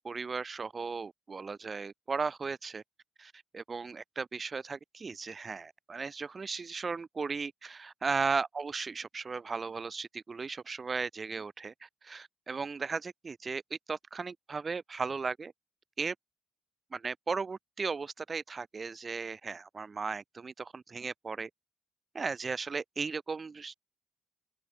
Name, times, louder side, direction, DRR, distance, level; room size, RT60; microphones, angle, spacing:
voice 1, 0.0-2.8 3.2-15.5 16.0-16.1 16.9-21.5 22.1-23.7, right 4 dB, 35° right, 1.0 m, -36 dB
open air
cardioid pair, 90°, 0 cm